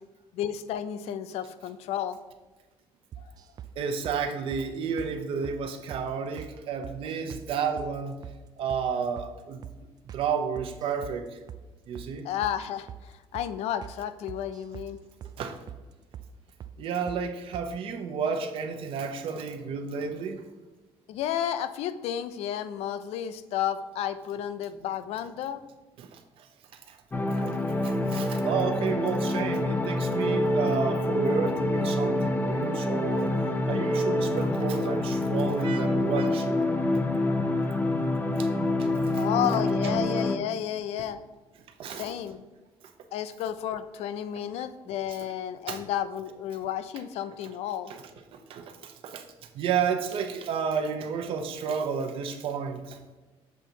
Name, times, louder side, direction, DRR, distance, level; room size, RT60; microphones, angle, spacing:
voice 1, 0.3-2.2 12.2-15.0 21.1-25.6 36.8-37.2 37.7-38.1 38.6-41.2 41.9-42.4 43.1-47.9, left 10 dB, 80° left, 13 dB, 0.5 m, -32 dB
sound 1, 3.1-3.7 4.0-4.2 4.5-4.7 5.0-5.1 5.4-5.6 5.9-6.1 6.4-6.5 6.8-7.5 7.8-7.9 8.2-8.4 8.7-8.9 9.2-9.3 9.6-9.8 10.1-10.3 10.6-11.2 11.5-11.6 11.9-12.1 12.4-12.6 12.9-13.0 13.3-13.5 13.8-14.0 14.3-14.9 15.2-15.4 15.7-15.8 16.1-16.3 16.6-16.8 17.1-17.2 17.5-17.7, right 10 dB, 40° right, 0.4 m, -42 dB
voice 2, 3.8-8.2 8.6-9.6 10.1-11.4 11.9-12.3 15.4-15.6 16.8-20.4 26.0-26.5 26.7-27.0 27.4-27.5 27.8-33.3 33.7-36.7 37.5-37.8 38.4-38.5 38.8-38.9 39.1-39.2 41.8-42.1 45.7-45.8 48.3-49.2 49.5-53.0, right 6 dB, 60° right, 6 dB, 0.8 m, -31 dB
sound 2, 27.1-40.4, left 1 dB, 15° left, 0.5 m, -26 dB
7.0 x 3.9 x 4.6 m, 1.2 s
cardioid pair, 155°, 11 cm